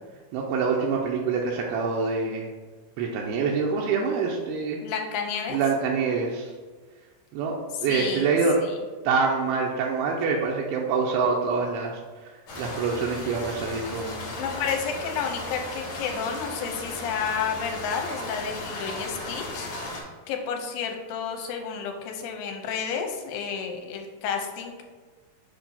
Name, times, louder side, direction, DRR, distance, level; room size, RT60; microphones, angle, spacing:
voice 1, 0.3-2.5 3.0-4.8 5.5-6.5 7.3-8.6 9.0-11.9 12.6-14.3, right 5 dB, 90° right, -1 dB, 2.5 m, -25 dB
voice 2, 4.8-5.6 7.7-8.8 14.4-19.7 20.3-24.8, left 6 dB, 85° left, 3 dB, 2.4 m, -31 dB
sound 1, 12.5-20.0, left 2 dB, 60° left, 2.0 m, -36 dB
7.1 x 2.7 x 5.4 m, 1.4 s
omnidirectional pair, 4.3 m